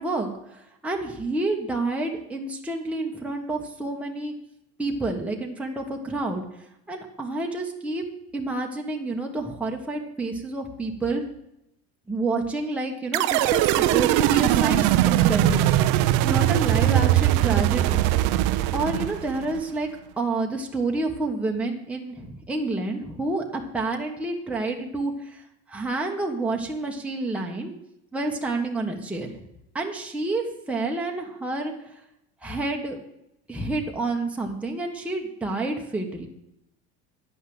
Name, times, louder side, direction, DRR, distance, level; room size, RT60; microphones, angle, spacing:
voice 1, 0.0-4.3 4.8-6.4 6.9-8.0 8.3-11.2 12.1-15.7 16.2-18.0 18.7-19.9 20.2-25.4 25.7-27.7 28.1-29.3 29.7-31.7 32.4-33.0 33.5-36.3, right 2 dB, 5° right, 0 dB, 1.4 m, -29 dB
sound 1, 13.1-19.6, right 13 dB, 70° right, 0.7 m, -21 dB
10.0 x 5.5 x 7.8 m, 0.83 s
supercardioid pair, 120°, 32 cm